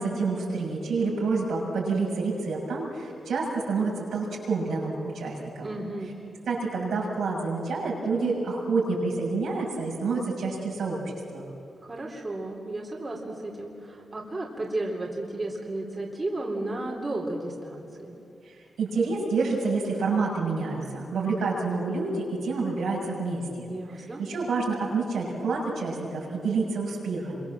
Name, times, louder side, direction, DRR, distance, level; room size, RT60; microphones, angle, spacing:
voice 1, 0.0-5.7 6.5-11.5 18.5-23.7 23.9-27.4, right 4 dB, 80° right, -3 dB, 7.0 m, -28 dB
voice 2, 5.6-6.1 11.8-18.1 23.7-24.2, right 2 dB, 35° right, -2 dB, 4.3 m, -33 dB
26.5 x 24.5 x 7.6 m, 2.7 s
cardioid pair, 60°, 0 cm